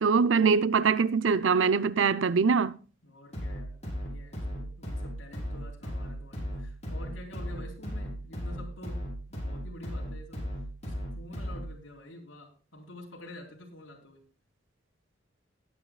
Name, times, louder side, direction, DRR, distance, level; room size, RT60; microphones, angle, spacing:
voice 1, 0.0-2.8, right 5 dB, 75° right, 0.6 m, -23 dB
voice 2, 3.0-10.5 10.9-14.2, left 1 dB, 75° left, 4.1 m, -48 dB
sound 1, 3.3-11.8, equal, 35° left, 6.1 m, -37 dB
20.0 x 9.4 x 2.3 m
head